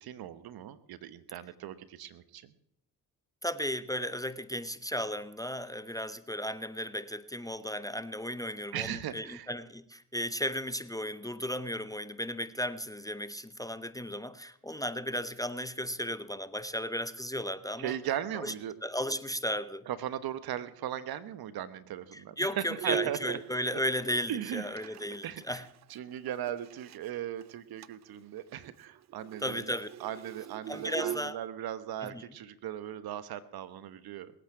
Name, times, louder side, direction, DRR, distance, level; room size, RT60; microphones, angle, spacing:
voice 1, 0.0-2.5 8.7-9.5 17.8-18.8 19.9-23.4 23.7-23.8 24.3-25.0 25.2-25.6 25.9-34.3, right 11 dB, 60° right, 14 dB, 1.2 m, -38 dB
voice 2, 3.4-18.0 18.4-18.5 18.8-19.9 22.1-25.7 29.4-29.9 30.7-31.4 32.1-32.2, equal, 10° left, 13 dB, 0.7 m, -35 dB
Bowed string instrument, 22.8-27.1 27.4-27.5 27.8-28.1 28.4-31.2, right 11 dB, 45° right, 0.5 m, -41 dB
20.5 x 8.9 x 5.9 m, 0.72 s
hypercardioid pair, 60°, 41 cm